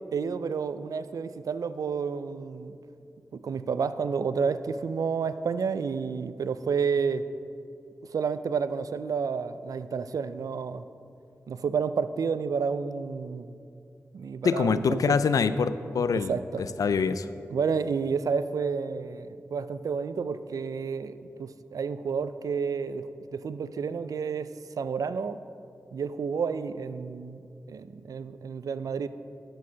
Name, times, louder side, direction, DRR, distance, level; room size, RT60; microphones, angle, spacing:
voice 1, 0.1-2.8 3.3-7.2 8.1-10.8 11.5-13.6 14.1-15.2 16.1-16.6 17.5-25.4 25.9-29.1, right 5 dB, 85° right, 13 dB, 0.4 m, -30 dB
voice 2, 14.4-17.3, left 5 dB, 85° left, 13 dB, 0.4 m, -25 dB
12.5 x 4.6 x 6.2 m, 2.6 s
cardioid pair, 45°, 6 cm